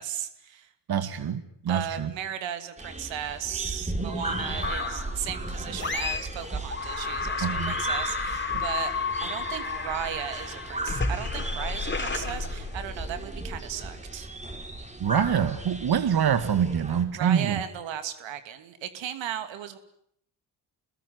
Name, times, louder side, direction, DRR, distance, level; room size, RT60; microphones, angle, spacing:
voice 1, 0.0-0.7 1.7-8.9 9.2-14.3 17.2-19.8, right 9 dB, 75° right, 10 dB, 2.7 m, -36 dB
voice 2, 0.9-2.1 7.4-7.7 8.5-8.6 15.0-17.6, right 8 dB, 55° right, 11 dB, 2.1 m, -25 dB
sound 1, 2.8-17.0, right 2 dB, 15° right, 5.2 m, -36 dB
sound 2, 4.6-5.2 5.8-6.4 6.7-13.2, left 4 dB, 25° left, 4.1 m, -32 dB
25.5 x 20.5 x 9.5 m, 0.70 s
supercardioid pair, 55°, 46 cm